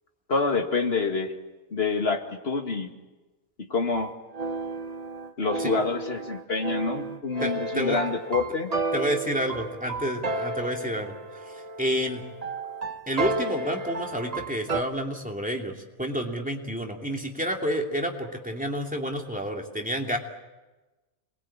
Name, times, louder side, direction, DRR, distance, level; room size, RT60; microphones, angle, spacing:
voice 1, 0.3-1.3 1.7-2.9 3.6-4.1 5.4-8.7, left 4 dB, 45° left, 4 dB, 2.4 m, -27 dB
sound 1, 3.9-14.8, right 3 dB, 30° right, 1.0 m, -32 dB
voice 2, 7.4-8.0 8.9-11.4 11.8-12.2 13.1-20.2, equal, 5° right, 1 dB, 2.7 m, -29 dB
26.5 x 21.5 x 8.8 m, 1.1 s
omnidirectional pair, 1.5 m